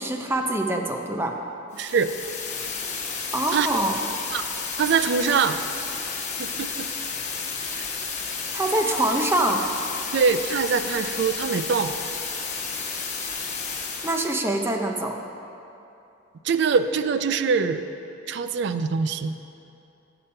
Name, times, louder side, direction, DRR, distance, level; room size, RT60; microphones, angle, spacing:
voice 1, 0.0-1.4 3.3-4.0 8.5-9.6 14.0-15.2, right 1 dB, 10° right, 3 dB, 0.5 m, -24 dB
sound 1, 1.7-14.4, left 5 dB, 40° left, 1.0 m, -32 dB
voice 2, 1.8-2.1 3.5-3.7 4.3-4.4 4.8-5.6 6.4-6.9 7.8-7.9 10.1-11.9 16.4-17.9 18.3-19.3, right 5 dB, 60° right, 11 dB, 0.4 m, -23 dB
7.9 x 6.9 x 5.5 m, 2.8 s
head